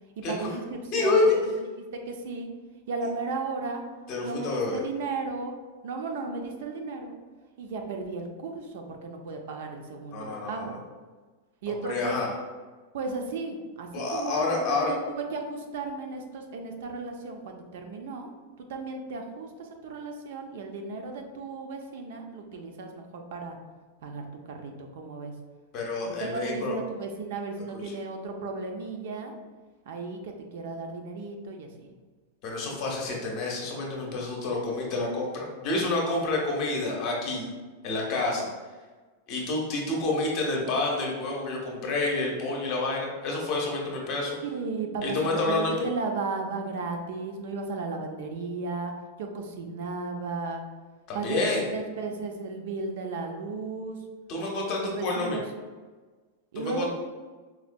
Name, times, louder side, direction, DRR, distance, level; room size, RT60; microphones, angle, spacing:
voice 1, 0.2-1.2 1.8-2.5 2.9-3.8 4.2-5.5 5.8-7.2 7.6-10.8 11.6-12.2 12.9-18.3 18.7-23.6 24.0-25.3 26.1-29.4 29.9-31.9 44.4-45.2 45.5-48.9 49.2-50.6 51.1-54.0 54.8-55.4 56.5-56.9, right 3 dB, 65° right, 3 dB, 0.4 m, -35 dB
voice 2, 0.9-1.4 4.1-4.8 10.1-10.8 11.8-12.3 13.9-14.9 25.7-26.8 27.8-27.9 32.4-37.5 37.8-38.5 39.3-44.4 45.0-45.7 51.1-51.6 54.3-55.4 56.6-56.9, left 3 dB, 35° left, -1 dB, 0.7 m, -28 dB
4.2 x 2.1 x 2.5 m, 1.4 s
supercardioid pair, 165°, 0 cm